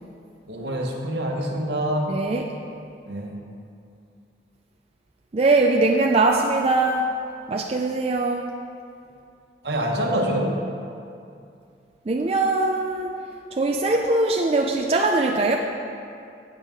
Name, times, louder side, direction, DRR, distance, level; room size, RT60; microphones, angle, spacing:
voice 1, 0.5-2.1 3.1-3.3 9.6-10.6, right 1 dB, 70° right, 1 dB, 1.1 m, -25 dB
voice 2, 2.1-2.5 5.3-7.1 7.5-8.5 12.1-13.1 13.5-15.6, right 2 dB, 35° right, 1 dB, 0.4 m, -21 dB
8.1 x 5.4 x 7.4 m, 2.5 s
head